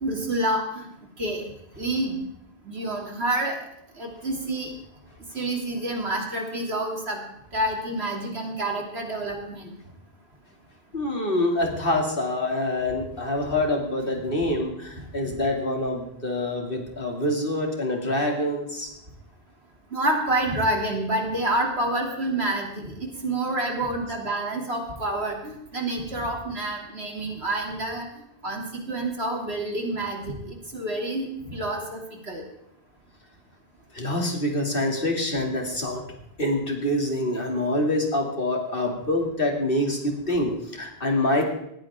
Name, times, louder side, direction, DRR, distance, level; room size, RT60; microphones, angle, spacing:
voice 1, 0.0-0.9 1.2-1.4 1.8-2.2 2.6-3.6 4.0-4.7 5.3-7.2 7.5-9.7 19.9-28.0 28.4-32.4, right 1 dB, 90° right, 1 dB, 3.4 m, -28 dB
voice 2, 10.9-18.9 33.9-36.0 36.4-41.4, left 1 dB, 60° left, 2 dB, 3.0 m, -26 dB
18.5 x 14.5 x 3.7 m, 0.77 s
omnidirectional pair, 1.1 m